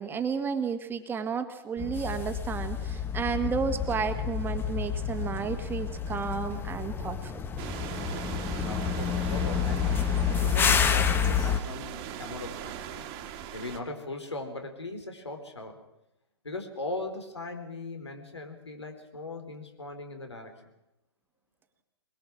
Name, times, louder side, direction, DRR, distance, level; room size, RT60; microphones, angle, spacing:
voice 1, 0.0-7.3, right 6 dB, 15° right, 7 dB, 1.6 m, -32 dB
sound 1, 1.8-11.6, left 7 dB, 15° left, 1.0 m, -29 dB
sound 2, 7.6-13.8, right 9 dB, 35° right, 1.9 m, -40 dB
voice 2, 8.3-13.1 13.5-15.8 16.4-20.5, left 2 dB, 85° left, 5 dB, 4.0 m, -39 dB
22.0 x 22.0 x 6.2 m, 0.87 s
hypercardioid pair, 120°, 14 cm